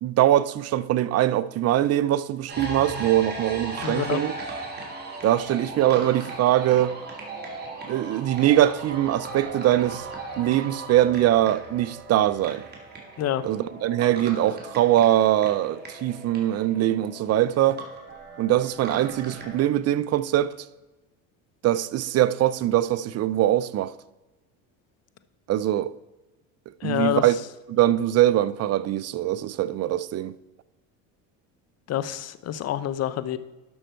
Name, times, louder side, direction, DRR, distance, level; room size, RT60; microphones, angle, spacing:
voice 1, 0.0-4.3 5.2-7.0 7.9-10.1 10.4-12.6 13.4-17.8 18.4-20.5 21.6-23.9 25.5-25.9 26.8-27.4 27.7-30.4, right 13 dB, 45° right, 0.6 m, -22 dB
sound 1, 2.5-19.6, right 3 dB, 25° right, 2.9 m, -38 dB
voice 2, 3.8-4.2 13.2-13.4 26.8-27.2 31.9-33.4, left 11 dB, 45° left, 0.8 m, -27 dB
12.0 x 6.3 x 4.5 m
supercardioid pair, 95°, 36 cm